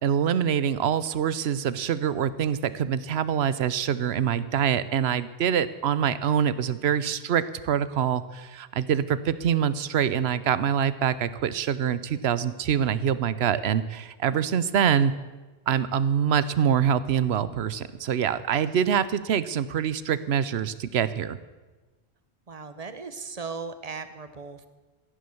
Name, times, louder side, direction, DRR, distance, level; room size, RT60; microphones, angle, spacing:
voice 1, 0.0-15.1 15.7-21.4, right 8 dB, 70° right, 15 dB, 0.9 m, -25 dB
voice 2, 22.5-24.7, right 4 dB, 35° right, 11 dB, 1.0 m, -37 dB
15.0 x 9.6 x 7.0 m, 1.2 s
omnidirectional pair, 1.1 m